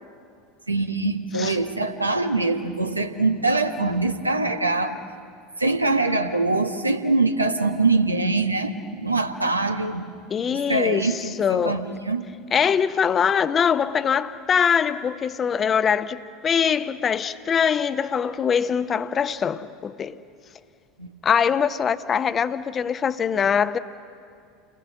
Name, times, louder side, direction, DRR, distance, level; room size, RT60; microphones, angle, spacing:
voice 1, 0.7-5.0 5.6-10.0 10.5-12.2 21.0-21.1, right 3 dB, 85° right, 1.4 m, -23 dB
voice 2, 10.3-11.8 12.5-20.2 21.2-23.8, left 7 dB, 30° left, 0.9 m, -23 dB
29.5 x 21.0 x 7.0 m
figure-of-eight pair, 75°, 0 cm